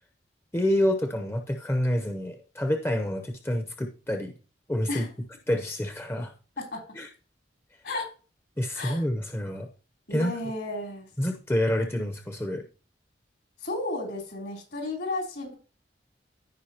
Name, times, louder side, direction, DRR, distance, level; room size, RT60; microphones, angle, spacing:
voice 1, 0.5-4.3 4.7-5.1 5.5-6.3 6.9-7.1 8.6-9.7 10.1-10.3 11.2-12.6, left 1 dB, 15° left, 5 dB, 0.8 m, -28 dB
voice 2, 10.1-11.1 13.6-15.6, left 2 dB, 70° left, 0 dB, 3.4 m, -33 dB
15.0 x 4.9 x 2.9 m, 0.35 s
head